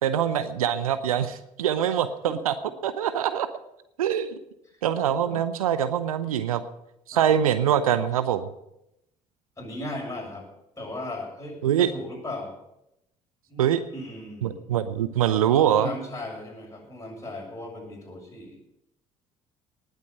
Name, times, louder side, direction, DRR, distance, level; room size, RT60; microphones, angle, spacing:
voice 1, 0.0-2.5 2.8-3.5 4.0-4.3 4.8-6.6 7.1-8.5 11.6-11.9 13.6-13.8 14.4-15.9, right 9 dB, 80° right, 13 dB, 0.7 m, -24 dB
voice 2, 9.6-10.5 10.8-12.6 13.5-14.7 15.6-18.6, left 1 dB, 15° left, -1 dB, 7.1 m, -37 dB
19.0 x 8.3 x 6.6 m, 0.84 s
figure-of-eight pair, 55°, 18 cm